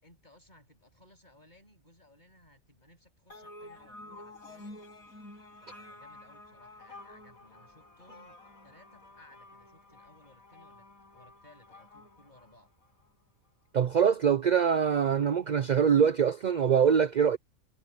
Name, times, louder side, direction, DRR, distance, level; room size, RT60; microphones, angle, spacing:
voice 1, 0.0-4.8 5.6-8.4 8.6-12.7, left 1 dB, 30° left, 8.0 m, -60 dB
sound 1, 3.3-13.1, left 2 dB, 85° left, 8.3 m, -51 dB
voice 2, 13.7-17.4, right 7 dB, 65° right, 0.4 m, -24 dB
omnidirectional pair, 1.4 m